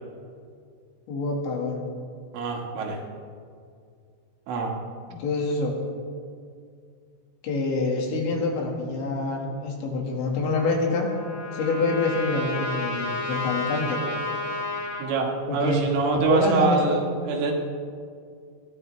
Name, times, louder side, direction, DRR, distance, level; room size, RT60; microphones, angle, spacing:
voice 1, 1.1-1.9 5.1-5.8 7.4-11.1 11.5-14.0 15.5-15.9 16.1-17.0, left 3 dB, 70° left, 0 dB, 4.1 m, -26 dB
voice 2, 2.3-3.0 4.5-4.7 15.0-17.5, right 4 dB, 80° right, 0 dB, 4.2 m, -24 dB
Trumpet, 10.5-15.1, left 2 dB, 50° left, 3.5 m, -31 dB
20.5 x 15.5 x 3.3 m, 2.2 s
omnidirectional pair, 5.6 m